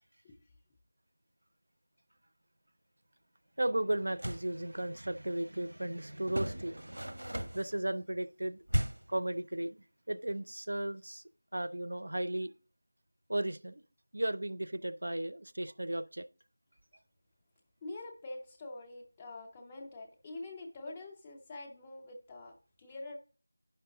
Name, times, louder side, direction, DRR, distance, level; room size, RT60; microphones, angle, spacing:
voice 1, 3.6-7.1 7.5-8.6 9.1-11.2 11.5-12.5 13.3-13.8 14.1-16.3, right 1 dB, 55° right, 0.5 m, -35 dB
sound 1, 4.0-4.5 6.3-7.7 8.7-9.2, right 1 dB, 85° right, 0.9 m, -35 dB
voice 2, 17.8-23.2, left 2 dB, 5° left, 0.4 m, -45 dB
10.0 x 5.6 x 3.8 m
figure-of-eight pair, 180°, 0 cm